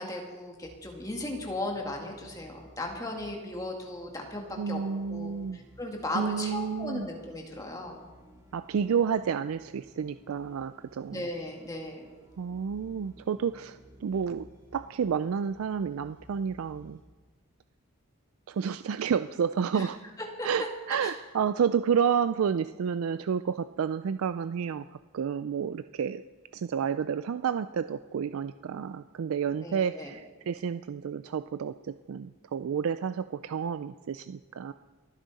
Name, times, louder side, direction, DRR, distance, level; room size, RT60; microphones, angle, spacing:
voice 1, 0.0-4.8 5.1-8.1 11.1-12.1 19.7-19.9 20.4-21.1 29.6-30.1, left 1 dB, 15° left, 0 dB, 2.0 m, -36 dB
sound 1, 0.6-17.0, equal, 15° right, 2.9 m, -56 dB
voice 2, 4.6-5.6 6.1-7.1 8.5-11.3 12.4-14.5 14.7-17.0 18.5-20.0 20.4-24.8 25.1-26.2 26.5-34.7, right 7 dB, 75° right, 12 dB, 0.4 m, -30 dB
30.0 x 10.0 x 4.1 m, 1.3 s
head